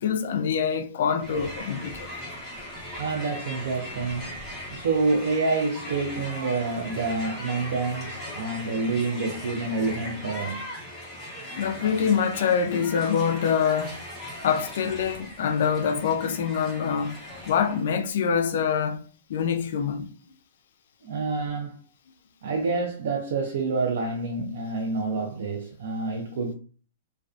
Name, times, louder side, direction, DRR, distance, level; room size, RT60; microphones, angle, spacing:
voice 1, 0.0-2.1 11.5-14.0 14.4-17.2 17.5-19.0 19.3-20.1, left 7 dB, 65° left, 0.3 m, -25 dB
Crowd, 1.2-17.9, left 1 dB, 5° left, 0.7 m, -39 dB
voice 2, 3.0-4.4 4.7-10.8 21.0-21.8 22.4-26.5, right 3 dB, 65° right, 0.4 m, -28 dB
2.4 x 2.2 x 2.3 m
hypercardioid pair, 160°, 0 cm